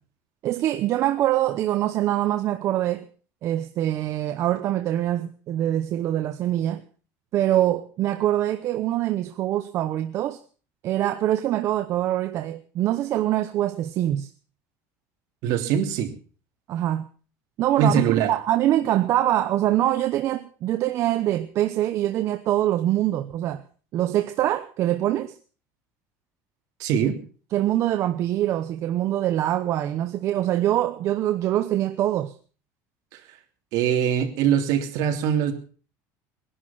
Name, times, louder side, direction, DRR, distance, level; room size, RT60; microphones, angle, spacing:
voice 1, 0.4-3.1 3.4-6.8 7.3-10.4 10.8-14.3 16.7-17.1 17.6-23.6 23.9-25.3 27.5-32.3, right 13 dB, 45° right, 0.9 m, -24 dB
voice 2, 15.4-16.1 17.8-18.3 26.8-27.2 33.1-33.2 33.7-35.5, right 8 dB, 60° right, 3.1 m, -22 dB
20.0 x 11.5 x 5.9 m
cardioid pair, 160°, 7 cm